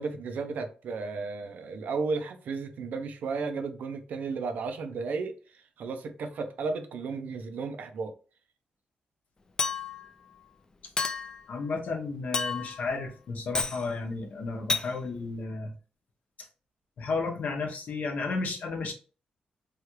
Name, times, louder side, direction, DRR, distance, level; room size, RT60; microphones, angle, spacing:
voice 1, 0.0-8.1, right 4 dB, 75° right, 0.5 m, -34 dB
Chink clink, 9.6-10.1 11.0-11.4 12.3-12.8 13.5-13.8 14.7-14.9, left 4 dB, 25° left, 0.4 m, -30 dB
voice 2, 11.5-15.7 17.0-18.9, left 4 dB, 65° left, 0.8 m, -33 dB
3.3 x 2.3 x 3.0 m
cardioid pair, 105°, 3 cm